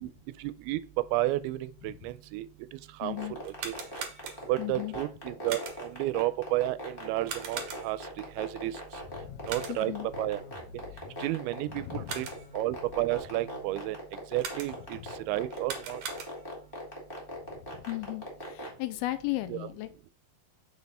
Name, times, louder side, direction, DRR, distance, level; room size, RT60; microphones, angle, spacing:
voice 1, 0.4-0.8 1.1-2.5 2.7-3.7 4.5-8.8 9.5-10.4 11.2-12.3 12.5-14.0 14.3-15.0 15.3-16.0 19.5-19.7, right 16 dB, 90° right, 2.5 m, -32 dB
voice 2, 3.0-3.3 4.6-4.9 9.2-10.1 11.8-12.1 17.7-20.1, left 18 dB, 90° left, 2.6 m, -36 dB
sound 1, 3.0-18.7, left 1 dB, 25° left, 1.2 m, -40 dB
sound 2, 3.4-4.7 5.5-6.0 7.2-8.1 9.4-10.0 11.8-12.6 14.4-15.0 15.5-16.6, right 6 dB, 65° right, 2.0 m, -41 dB
sound 3, 8.9-13.8, left 5 dB, 65° left, 2.0 m, -51 dB
6.5 x 4.1 x 5.4 m
omnidirectional pair, 4.4 m